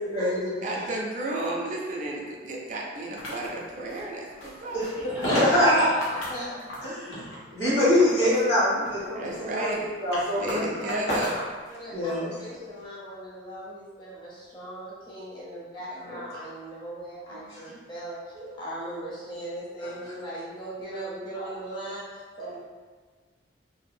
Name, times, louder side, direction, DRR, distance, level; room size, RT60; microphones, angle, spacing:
voice 1, 0.1-0.8 4.7-10.8 11.2-11.3 11.9-12.3 16.1-16.2 17.3-17.6 18.3-18.5 21.3-21.5 22.4-22.6, left 1 dB, 60° left, -11 dB, 1.3 m, -25 dB
voice 2, 0.6-4.8 9.2-9.8 10.4-11.4, right 2 dB, 40° right, -2 dB, 0.4 m, -32 dB
sound 1, 3.2-7.0 7.4-8.5 8.9-11.9, left 1 dB, 90° left, 0.6 m, -40 dB
voice 3, 10.8-11.3 11.7-18.2 18.6-22.6, right 1 dB, 25° left, -7 dB, 0.6 m, -39 dB
2.7 x 2.2 x 2.5 m, 1.4 s
head